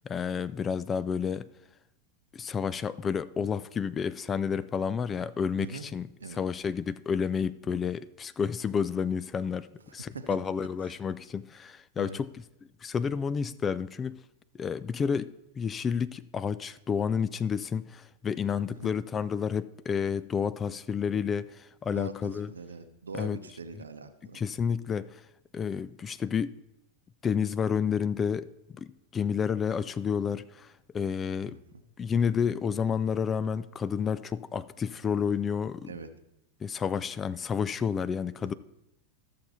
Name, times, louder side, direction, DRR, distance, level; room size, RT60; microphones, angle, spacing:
voice 1, 0.0-1.5 2.3-9.7 9.9-12.3 12.8-14.2 14.5-22.5 23.1-23.4 24.3-25.2 25.5-26.6 27.2-28.9 29.1-31.6 32.0-35.9 36.6-38.5, left 6 dB, 20° left, 0.3 m, -30 dB
voice 2, 21.9-24.4 31.5-31.6 35.9-36.1 38.4-38.5, right 3 dB, 70° right, 0.8 m, -42 dB
13.0 x 6.8 x 4.2 m
figure-of-eight pair, 90°, 0 cm